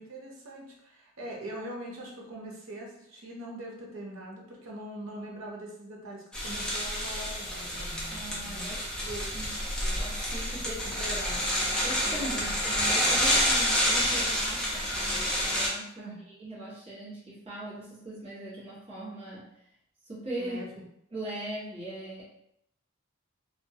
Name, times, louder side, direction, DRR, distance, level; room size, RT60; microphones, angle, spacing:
voice 1, 0.0-9.3 10.6-11.5 16.0-16.2 20.4-20.7, right 1 dB, 85° right, -2 dB, 0.7 m, -42 dB
sound 1, 6.3-15.7, equal, 5° left, 0.3 m, -28 dB
voice 2, 8.1-8.8 9.3-10.8 11.8-19.6 20.0-20.6 21.1-22.2, right 1 dB, 30° right, -9 dB, 0.9 m, -40 dB
2.2 x 2.1 x 2.7 m, 0.76 s
head